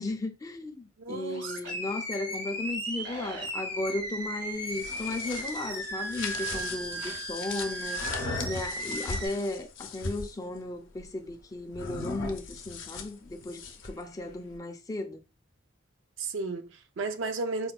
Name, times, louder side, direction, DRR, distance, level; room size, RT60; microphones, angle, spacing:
voice 1, 0.0-8.1 8.4-15.2, left 2 dB, 20° left, 0.4 m, -35 dB
voice 2, 1.0-1.6 14.3-14.4 16.2-17.7, right 3 dB, 70° right, 0.4 m, -34 dB
Animal, 1.3-9.3, right 1 dB, 90° right, 1.8 m, -36 dB
sound 1, 4.6-10.3 11.7-14.0, left 4 dB, 80° left, 0.5 m, -38 dB
4.3 x 2.1 x 2.3 m
head